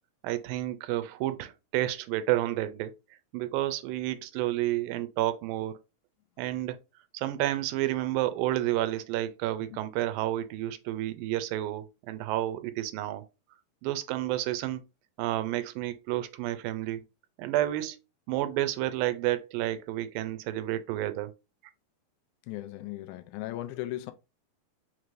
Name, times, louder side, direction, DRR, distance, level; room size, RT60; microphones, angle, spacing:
voice 1, 0.2-2.9 3.3-5.8 6.4-6.8 7.1-13.2 13.8-14.8 15.2-17.0 17.4-18.0 18.3-21.3, right 14 dB, 90° right, 2.3 m, -30 dB
voice 2, 22.5-24.1, left 15 dB, 80° left, 1.8 m, -37 dB
5.6 x 3.1 x 2.5 m
omnidirectional pair, 4.0 m